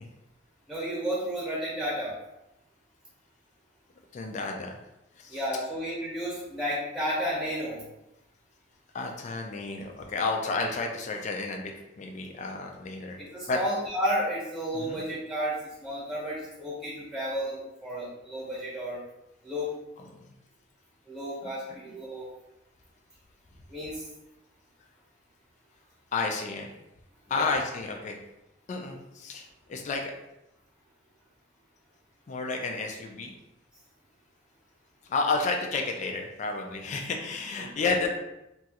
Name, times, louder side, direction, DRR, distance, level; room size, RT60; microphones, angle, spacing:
voice 1, 0.7-2.1 5.3-7.8 13.2-15.6 15.8-19.0 19.4-19.7 21.1-22.3 23.7-24.1 27.3-27.6 37.5-38.1, equal, 5° right, -6 dB, 0.9 m, -32 dB
voice 2, 4.1-4.7 5.2-5.4 8.9-13.2 13.5-13.6 14.8-15.0 21.4-21.5 26.1-26.7 27.3-28.2 28.7-29.4 29.7-30.1 32.3-33.3 35.1-38.1, left 3 dB, 40° left, 2 dB, 0.3 m, -31 dB
3.0 x 2.4 x 2.8 m, 0.90 s
head